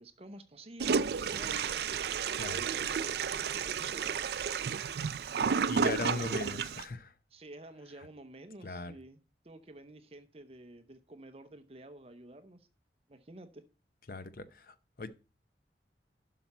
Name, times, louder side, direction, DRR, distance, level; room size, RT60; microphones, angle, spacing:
voice 1, 0.0-1.9 2.2-4.3 5.8-6.6 7.3-9.2 9.4-12.7 13.1-13.6, right 1 dB, 35° right, 10 dB, 0.7 m, -50 dB
Toilet flush, 0.8-6.8, right 6 dB, 65° right, 0.4 m, -32 dB
voice 2, 5.7-7.1 8.6-8.9 14.1-15.1, left 3 dB, 50° left, 13 dB, 0.7 m, -39 dB
11.5 x 5.9 x 4.2 m, 0.32 s
head